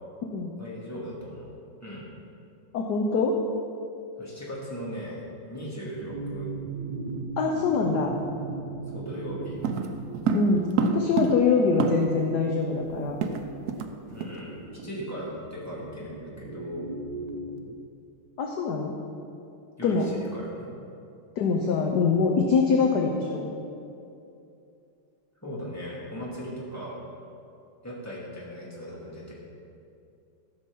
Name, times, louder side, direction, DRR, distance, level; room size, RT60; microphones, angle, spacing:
voice 1, 0.6-1.5 1.8-2.1 4.2-6.5 8.9-9.6 14.1-17.0 19.8-20.7 25.4-27.0 27.8-29.3, equal, 5° left, -7 dB, 2.4 m, -38 dB
voice 2, 2.7-3.3 7.4-8.1 10.3-13.2 18.4-18.9 19.8-20.1 21.4-23.5, left 4 dB, 60° left, 1 dB, 1.2 m, -24 dB
sound 1, 6.0-17.7, right 3 dB, 65° right, 1.1 m, -38 dB
sound 2, 9.6-12.3 12.6-12.7 12.9-13.9 14.2-14.4 14.8-15.0, right 5 dB, 85° right, 0.8 m, -28 dB
14.0 x 6.0 x 5.4 m, 2.6 s
omnidirectional pair, 2.3 m